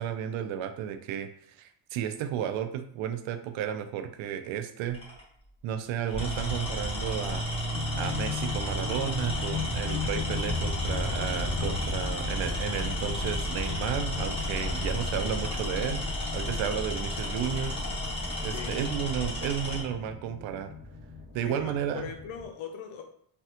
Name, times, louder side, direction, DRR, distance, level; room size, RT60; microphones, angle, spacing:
voice 1, 0.0-5.0 5.6-7.4 7.9-16.0 16.3-17.7 18.4-20.7 21.3-22.1, right 9 dB, 80° right, 7 dB, 0.5 m, -33 dB
Tools, 4.9-5.2 6.0-19.9, left 1 dB, 10° left, 1.1 m, -33 dB
sound 1, 6.1-22.5, left 2 dB, 20° right, 0.9 m, -36 dB
voice 2, 18.5-19.3 21.4-23.0, left 7 dB, 80° left, 4 dB, 0.5 m, -41 dB
3.2 x 2.2 x 2.8 m, 0.66 s
cardioid pair, 110°, 46 cm